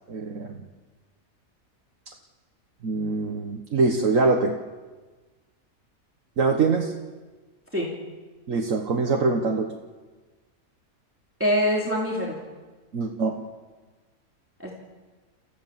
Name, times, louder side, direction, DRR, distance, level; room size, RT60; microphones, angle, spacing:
voice 1, 0.1-0.6 2.8-4.6 6.4-6.9 8.5-9.7 12.9-13.4, right 3 dB, 65° right, 2 dB, 1.7 m, -23 dB
voice 2, 11.4-12.4 14.6-14.7, equal, 10° right, -3 dB, 2.9 m, -24 dB
29.5 x 15.0 x 7.4 m, 1.3 s
omnidirectional pair, 1.5 m